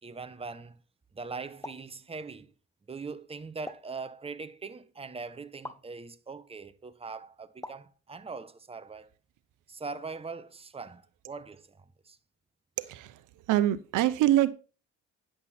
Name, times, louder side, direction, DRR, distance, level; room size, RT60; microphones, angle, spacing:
voice 1, 0.0-0.8 1.1-2.5 2.9-9.1 9.7-12.2, right 4 dB, 20° right, 0.9 m, -41 dB
sound 1, 1.6-1.9 3.7-4.0 5.6-5.9 7.6-7.9, left 2 dB, 10° left, 1.0 m, -43 dB
voice 2, 12.8-13.2 13.5-14.5, right 13 dB, 85° right, 0.8 m, -24 dB
9.7 x 7.7 x 4.2 m
cardioid pair, 90°, 30 cm